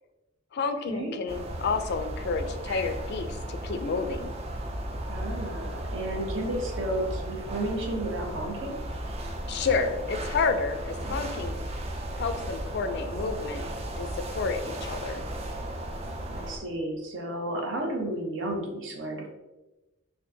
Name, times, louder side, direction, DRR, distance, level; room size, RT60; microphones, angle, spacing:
voice 1, 0.5-4.4 9.5-11.6 12.2-13.6 14.0-15.3, left 4 dB, 55° left, 8 dB, 0.4 m, -30 dB
sound 1, 1.3-16.6, right 1 dB, 30° right, 0.4 m, -35 dB
voice 2, 5.1-8.8 16.3-19.3, right 1 dB, 65° right, 1 dB, 0.8 m, -32 dB
4.3 x 2.7 x 2.6 m, 1.1 s
head